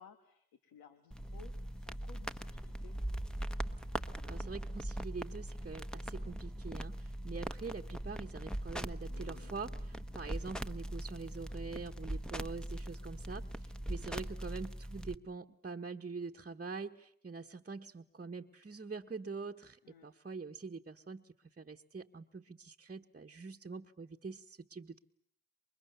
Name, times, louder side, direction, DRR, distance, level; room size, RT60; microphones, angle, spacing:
voice 1, 0.0-3.0 13.8-14.3 19.8-20.1, left 7 dB, 85° left, 8 dB, 1.6 m, -59 dB
sound 1, 1.1-15.2, right 1 dB, ahead, 1.1 m, -41 dB
voice 2, 4.2-25.0, right 4 dB, 30° right, 2 dB, 1.2 m, -45 dB
sound 2, 9.0-12.4, left 2 dB, 35° left, 1.9 m, -63 dB
28.0 x 23.5 x 7.0 m, 0.68 s
supercardioid pair, 45°, 34 cm